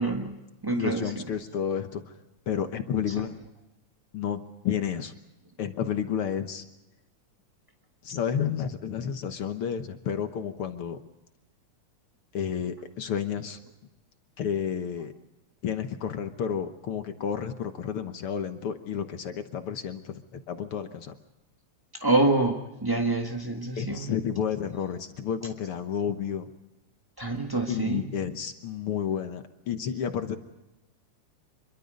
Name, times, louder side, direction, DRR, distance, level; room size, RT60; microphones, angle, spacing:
voice 1, 0.0-1.2 22.0-24.1 27.2-28.1, right 2 dB, 30° right, 2 dB, 0.4 m, -27 dB
voice 2, 0.7-2.0 2.5-3.3 4.1-5.1 5.6-6.6 8.0-11.0 12.3-13.6 14.4-15.1 15.6-21.1 23.8-26.5 27.7-30.4, left 8 dB, 60° left, 8 dB, 1.6 m, -31 dB
26.0 x 23.0 x 5.3 m, 1.0 s
omnidirectional pair, 3.5 m